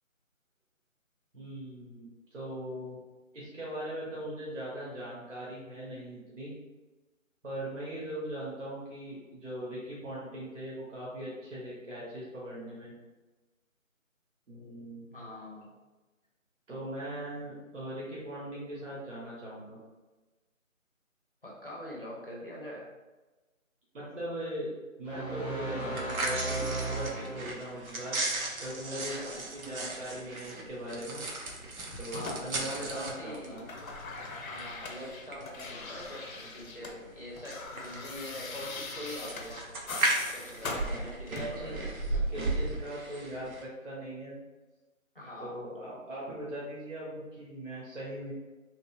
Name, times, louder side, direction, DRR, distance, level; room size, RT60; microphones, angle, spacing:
voice 1, 1.3-3.0 3.3-6.5 7.4-12.9 14.5-15.0 16.7-19.8 23.9-24.7 25.0-28.2 28.6-29.2 29.5-31.2 32.0-33.6 40.7-41.0 41.3-44.3 45.4-48.3, right 1 dB, 60° right, -7 dB, 0.9 m, -40 dB
voice 2, 15.1-15.7 21.4-22.9 25.8-26.3 28.9-29.4 32.1-33.7 34.4-39.6 40.2-42.3 45.1-45.6, left 1 dB, 40° left, -5 dB, 0.6 m, -44 dB
sound 1, 25.0-27.8, right 2 dB, 30° right, 0.8 m, -36 dB
sound 2, 25.8-43.6, right 2 dB, 90° right, 0.7 m, -37 dB
sound 3, 31.5-33.2 33.4-37.0 37.2-41.7 42.7-42.8, left 3 dB, 85° left, 0.6 m, -42 dB
2.9 x 2.4 x 2.3 m, 1.2 s
figure-of-eight pair, 175°, 41 cm